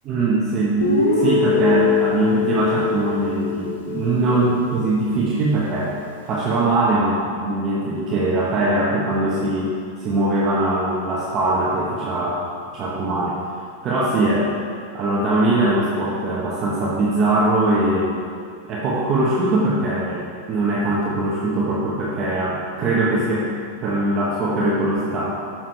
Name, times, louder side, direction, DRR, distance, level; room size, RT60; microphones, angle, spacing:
voice 1, 0.0-5.9 6.3-9.7 10.0-12.4 12.7-13.4 13.8-14.5 14.9-18.2 18.6-23.5 23.8-25.3, right 2 dB, 40° right, -6 dB, 1.2 m, -21 dB
Guitar, 0.8-4.8, left 5 dB, 90° left, 1.1 m, -22 dB
7.2 x 6.2 x 3.4 m, 2.2 s
hypercardioid pair, 105°, 0 cm